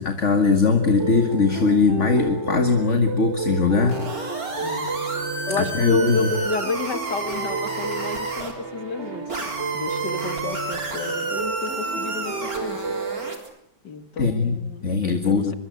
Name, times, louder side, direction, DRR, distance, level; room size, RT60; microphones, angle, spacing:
voice 1, 0.0-4.0 5.6-6.3 14.2-15.5, left 4 dB, 45° left, 6 dB, 2.1 m, -20 dB
sound 1, 0.8-13.4, right 4 dB, 40° right, 3.5 m, -31 dB
sound 2, 3.9-8.5 9.3-13.5, right 2 dB, 60° right, 4.4 m, -31 dB
voice 2, 4.6-4.9 5.5-13.0 13.8-15.5, left 4 dB, 90° left, 10 dB, 2.6 m, -31 dB
25.0 x 23.0 x 9.3 m, 0.75 s
omnidirectional pair, 1.8 m